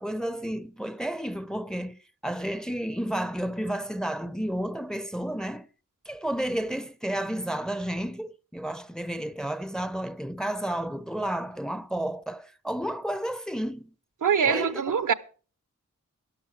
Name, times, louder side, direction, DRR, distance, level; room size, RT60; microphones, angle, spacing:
voice 1, 0.0-5.7 6.1-13.9 14.4-15.1, right 1 dB, ahead, 0.7 m, -32 dB
voice 2, 14.2-15.1, right 7 dB, 80° right, 0.9 m, -23 dB
12.5 x 12.0 x 4.7 m
wide cardioid pair, 60°, 31 cm